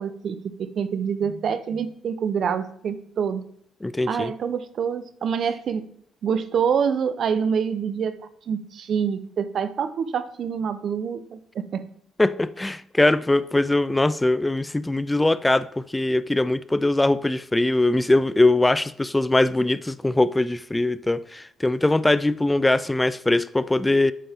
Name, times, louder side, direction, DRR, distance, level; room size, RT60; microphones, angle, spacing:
voice 1, 0.0-3.4 4.1-5.9 6.2-8.2 8.5-11.8, right 7 dB, 60° right, 0.8 m, -26 dB
voice 2, 3.8-4.3 12.2-24.1, left 2 dB, 15° left, 0.3 m, -21 dB
8.5 x 7.5 x 3.5 m
cardioid pair, 90°, 0 cm